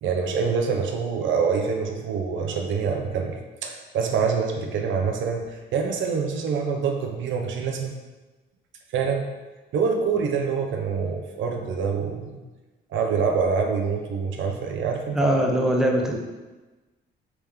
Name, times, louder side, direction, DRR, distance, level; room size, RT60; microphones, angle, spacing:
voice 1, 0.0-7.9 8.9-9.3 9.7-12.4 12.9-15.5, right 5 dB, 75° right, 3 dB, 0.6 m, -26 dB
voice 2, 15.1-16.2, right 1 dB, ahead, 1 dB, 0.5 m, -21 dB
3.3 x 3.1 x 3.5 m, 1.2 s
cardioid pair, 90°, 20 cm